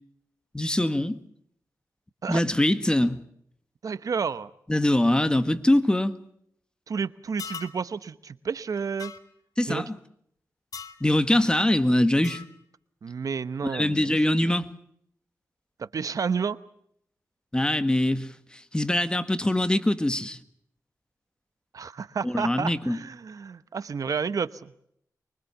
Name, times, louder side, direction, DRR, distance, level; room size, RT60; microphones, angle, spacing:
voice 1, 0.5-1.2 2.3-3.2 4.7-6.1 9.6-10.0 11.0-12.4 13.6-14.6 17.5-20.4 22.2-23.0, left 1 dB, 15° left, 1.7 m, -23 dB
voice 2, 3.8-4.5 6.9-9.1 9.7-9.8 13.0-14.3 15.8-16.6 21.7-24.8, right 6 dB, 65° right, 0.9 m, -31 dB
sound 1, 7.4-7.8 9.0-9.2 10.7-11.0 12.2-12.5, left 6 dB, 70° left, 2.0 m, -39 dB
25.0 x 23.5 x 7.1 m
wide cardioid pair, 80°, 6 cm